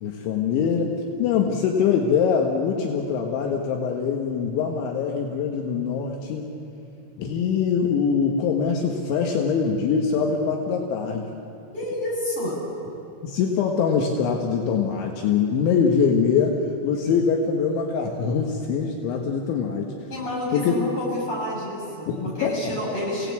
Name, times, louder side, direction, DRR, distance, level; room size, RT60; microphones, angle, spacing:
voice 1, 0.0-0.9 1.2-6.5 7.2-11.3 13.2-16.6 16.8-19.9 20.5-20.8 22.1-22.6 22.9-23.0, left 6 dB, 75° left, 2 dB, 3.7 m, -23 dB
voice 2, 11.7-12.6 20.1-23.3, left 1 dB, 30° left, -3 dB, 6.6 m, -29 dB
28.5 x 17.5 x 8.3 m, 2.6 s
omnidirectional pair, 5.5 m